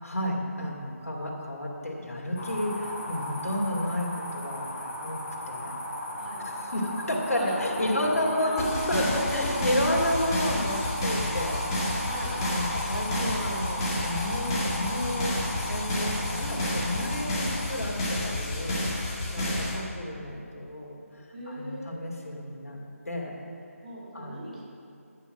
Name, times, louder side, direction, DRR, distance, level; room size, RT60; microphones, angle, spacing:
voice 1, 0.0-4.7 5.0-5.2 5.5-5.8 6.4-11.7 12.5-15.4 15.7-18.0 18.2-19.5 19.7-21.0 21.5-22.8 23.0-23.3 24.1-24.3, left 1 dB, 75° left, -2 dB, 2.7 m, -31 dB
sound 1, 2.4-17.7, equal, 35° left, 2.1 m, -36 dB
voice 2, 7.9-8.9 9.2-9.9 12.1-12.3 19.4-19.6 21.3-21.9 23.8-24.6, right 1 dB, 30° right, -6 dB, 2.2 m, -38 dB
sound 2, 8.6-19.7, left 1 dB, 20° left, 2.0 m, -30 dB
9.8 x 9.0 x 5.9 m, 2.5 s
figure-of-eight pair, 160°, 8 cm